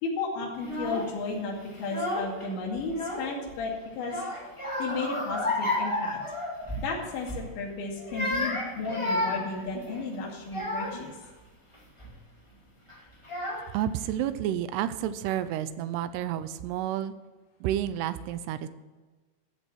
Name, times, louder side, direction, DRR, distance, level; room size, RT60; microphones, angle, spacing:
voice 1, 0.0-4.2 4.8-6.2 6.8-11.1, left 3 dB, 85° left, -1 dB, 4.7 m, -34 dB
Child speech kid speaking / Crying sobbing, 0.6-1.1 1.8-2.4 2.8-3.6 4.0-6.9 7.2-7.5 8.0-11.1 11.7-12.1 12.9-13.0 13.2-13.9, left 1 dB, 15° left, 0.9 m, -32 dB
voice 2, 13.7-17.1 17.6-18.7, right 11 dB, 85° right, 13 dB, 2.5 m, -30 dB
13.5 x 7.4 x 6.3 m, 1.3 s
omnidirectional pair, 5.1 m